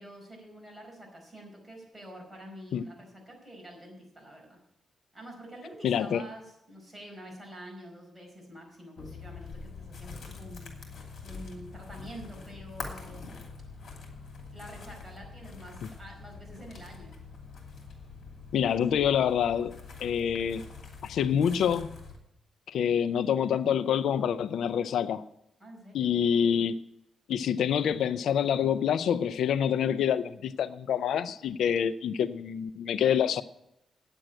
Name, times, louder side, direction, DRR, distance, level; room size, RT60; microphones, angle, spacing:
voice 1, 0.0-4.6 5.1-13.5 14.5-17.2 25.6-26.2 26.5-26.7, equal, 10° right, 4.9 m, -47 dB
voice 2, 5.8-6.2 18.5-19.8 20.0-20.6 21.0-22.0 22.7-25.2 25.9-26.7 27.3-33.4, left 8 dB, 85° left, 0.4 m, -26 dB
sound 1, 9.0-22.2, left 4 dB, 60° left, 2.7 m, -45 dB
9.1 x 7.7 x 8.8 m
cardioid pair, 115°, 0 cm